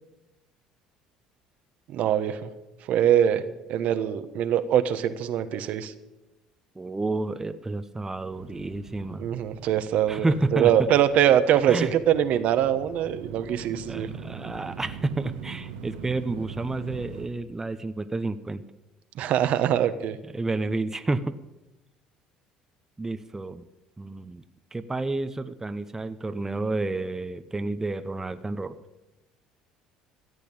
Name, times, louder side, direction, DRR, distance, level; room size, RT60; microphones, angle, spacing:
voice 1, 1.9-2.5 2.9-3.4 3.7-5.9 9.2-14.1 19.1-20.2, right 10 dB, 60° right, 10 dB, 1.1 m, -23 dB
voice 2, 6.8-9.2 10.1-10.9 11.7-11.9 13.9-18.6 20.3-21.3 23.0-23.7 24.0-24.4 24.7-28.8, right 2 dB, 15° right, 10 dB, 0.8 m, -30 dB
sound 1, 8.3-17.3, right 6 dB, 80° right, 1.4 m, -42 dB
14.5 x 8.3 x 8.9 m, 1.0 s
hypercardioid pair, 70°, 3 cm